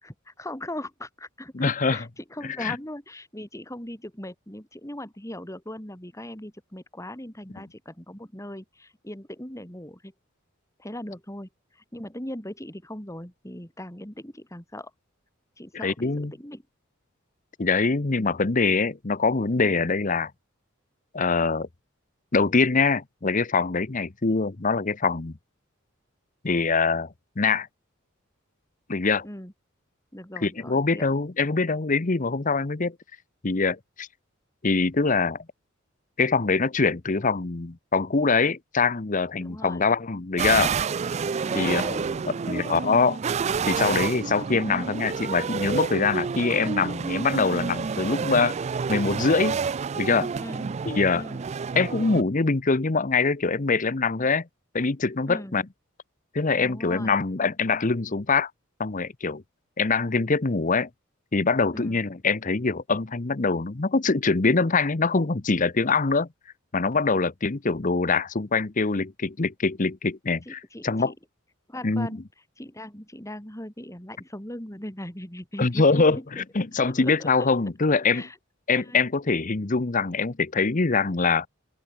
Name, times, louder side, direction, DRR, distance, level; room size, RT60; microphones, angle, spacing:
voice 1, 0.0-10.1 10.8-14.9 15.6-16.6 29.2-29.5 30.1-31.2 39.3-39.8 41.5-43.0 50.4-50.7 51.1-51.4 55.3-55.6 56.6-57.2 61.7-62.0 70.4-71.1 71.7-72.2 72.6-76.3 76.6-77.5 78.1-78.4 78.8-79.1, left 1 dB, 15° left, 3.8 m, -39 dB
voice 2, 1.5-2.0 2.6-2.7 15.8-16.3 17.6-20.3 21.1-21.7 22.3-25.4 26.4-27.1 27.4-27.7 28.9-29.2 30.4-32.9 33.4-34.1 34.6-35.4 36.2-40.7 41.5-42.1 42.5-43.2 43.7-48.6 48.9-49.6 50.0-50.3 50.8-51.2 51.8-54.5 54.7-55.6 56.3-58.5 58.8-59.4 59.8-60.9 61.3-66.3 66.7-71.1 71.8-72.1 75.6-78.2 78.7-81.5, left 4 dB, 40° left, 0.9 m, -24 dB
sound 1, 40.4-52.2, right 5 dB, 30° right, 0.3 m, -29 dB
open air
head